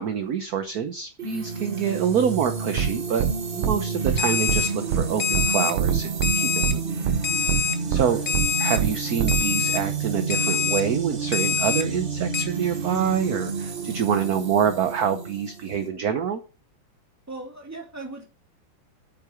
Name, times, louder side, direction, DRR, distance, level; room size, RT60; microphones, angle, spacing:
voice 1, 0.0-7.0 7.9-8.2 8.6-16.4, right 7 dB, 55° right, 8 dB, 1.2 m, -26 dB
sound 1, 1.2-15.9, right 5 dB, 35° right, 1.0 m, -30 dB
sound 2, 2.8-2.9 3.2-3.3 3.6-3.8 4.0-4.2 4.5-4.6 4.9-5.0 5.3-5.5 5.8-6.3 6.6-6.7 7.0-7.2 7.5-7.6 7.9-8.0 8.3-8.5 8.8-8.9 9.2-9.4, right 9 dB, 75° right, 1.6 m, -23 dB
Alarm, 4.2-4.7 5.2-5.7 6.2-6.7 7.2-7.7 8.3-8.8 9.3-9.8 10.3-10.8 11.3-11.8 12.3-12.4, left 7 dB, 40° left, 1.4 m, -25 dB
voice 2, 7.9-8.4 17.3-18.2, right 2 dB, 5° right, -1 dB, 2.6 m, -38 dB
8.7 x 6.1 x 6.4 m, 0.34 s
omnidirectional pair, 2.4 m